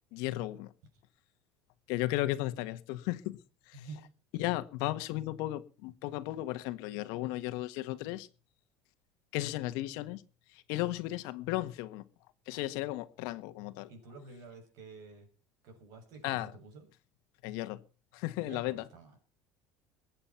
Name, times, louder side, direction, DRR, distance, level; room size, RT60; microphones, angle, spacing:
voice 1, 0.1-0.7 1.9-3.4 3.7-3.9 4.3-8.3 9.3-10.2 10.5-12.0 12.5-13.9 16.2-16.5 17.4-17.8 18.1-18.8, left 16 dB, 75° left, 1.5 m, -35 dB
voice 2, 3.7-4.1 13.9-15.3 15.6-16.8 18.4-19.2, right 3 dB, 60° right, 6.9 m, -49 dB
22.0 x 8.8 x 5.9 m
cardioid pair, 145°, 7 cm